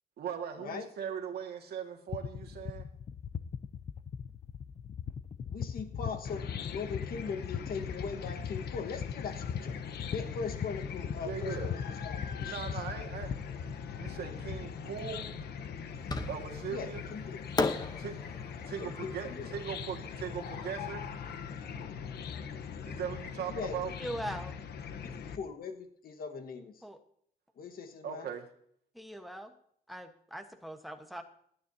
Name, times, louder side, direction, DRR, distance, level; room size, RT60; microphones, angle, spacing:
voice 1, 0.2-2.9 11.2-11.7 12.4-13.3 14.0-15.3 16.3-17.0 18.0-18.2 18.7-21.1 22.9-23.9 28.0-28.5, right 8 dB, 85° right, 4 dB, 1.9 m, -39 dB
sound 1, 2.1-14.7, left 7 dB, 45° left, 0.6 m, -40 dB
voice 2, 5.5-9.8 10.1-11.8 12.0-12.5 16.7-17.4 18.8-19.5 23.5-23.9 25.2-26.7 27.6-28.3, left 5 dB, 65° left, 5 dB, 1.5 m, -40 dB
Chicken rooster / Cricket, 6.2-25.4, left 6 dB, 85° left, 1.0 m, -42 dB
Fireworks, 16.1-16.8 17.6-20.7, left 3 dB, 25° left, 0.9 m, -36 dB
voice 3, 24.0-24.6 26.8-27.0 28.9-29.5 29.9-31.2, equal, ahead, 6 dB, 1.2 m, -41 dB
26.5 x 9.6 x 2.8 m, 0.65 s
wide cardioid pair, 160°, 16 cm